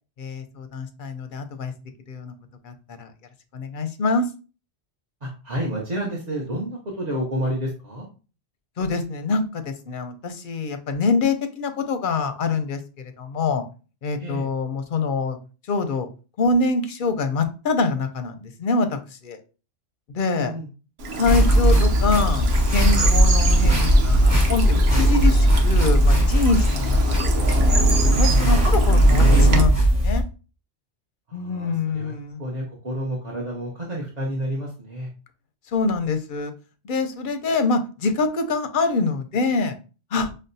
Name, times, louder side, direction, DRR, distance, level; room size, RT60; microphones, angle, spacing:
voice 1, 0.2-1.7 2.1-2.3 2.6-3.1 3.5-4.3 8.8-13.6 14.0-15.4 15.6-16.1 16.4-19.4 20.1-20.5 21.2-27.3 27.6-30.2 31.3-32.4 35.7-36.5 36.8-39.7 40.1-40.3, left 3 dB, 60° left, 8 dB, 0.6 m, -25 dB
voice 2, 5.2-8.1 14.2-14.5 20.3-20.7 31.3-32.1 32.4-35.1, right 1 dB, 40° right, -3 dB, 0.9 m, -30 dB
Bird vocalization bird call bird song / Stream, 21.0-29.6, right 1 dB, 65° right, 0.9 m, -25 dB
sound 1, 21.3-30.2, equal, 15° right, 1.0 m, -18 dB
6.1 x 2.0 x 2.6 m, 0.35 s
omnidirectional pair, 1.2 m